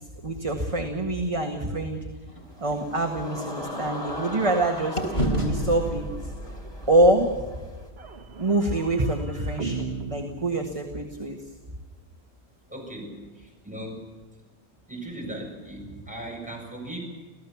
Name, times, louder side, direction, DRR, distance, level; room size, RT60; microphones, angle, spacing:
voice 1, 0.2-2.0 2.6-6.1 6.9-7.5 8.4-11.4, right 1 dB, 25° right, 3 dB, 1.8 m, -25 dB
sound 1, 2.3-4.6 5.0-8.9, left 1 dB, 45° left, 4.2 m, -34 dB
sound 2, 2.4-7.9, left 1 dB, 15° left, 2.7 m, -39 dB
join us, 3.6-6.9 8.0-11.2, right 4 dB, 50° right, 1.7 m, -37 dB
voice 2, 12.7-14.1 14.9-17.0, right 1 dB, 5° right, -1 dB, 7.6 m, -38 dB
28.0 x 16.0 x 7.2 m, 1.3 s
omnidirectional pair, 1.5 m